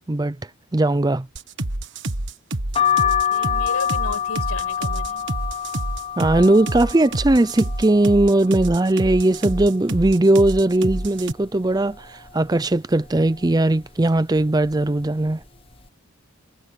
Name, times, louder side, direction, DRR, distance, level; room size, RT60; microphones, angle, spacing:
voice 1, 0.7-1.3 6.2-15.4, right 2 dB, 15° right, 0.4 m, -19 dB
sound 1, 1.4-11.3, right 1 dB, 55° right, 1.6 m, -27 dB
sound 2, 2.8-8.4 8.9-9.7 10.1-10.2 10.3-11.5 11.9-12.3 13.1-13.4 14.2-14.4 14.7-14.9, left 9 dB, 25° left, 1.1 m, -26 dB
voice 2, 3.0-5.3, left 3 dB, 80° left, 7.6 m, -34 dB
head